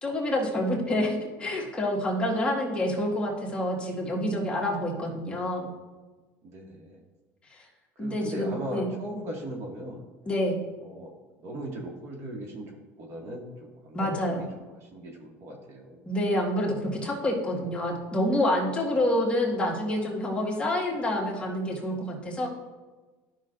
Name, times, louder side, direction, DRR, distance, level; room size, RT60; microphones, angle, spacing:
voice 1, 0.0-5.7 7.5-7.7 8.0-8.9 10.3-10.6 13.9-14.4 16.1-22.5, left 1 dB, 20° left, -2 dB, 1.7 m, -27 dB
voice 2, 6.4-7.0 8.0-10.1 10.8-11.1 11.4-16.0, right 1 dB, 55° right, 0 dB, 1.9 m, -38 dB
12.5 x 5.8 x 2.6 m, 1.2 s
cardioid pair, 125°, 6 cm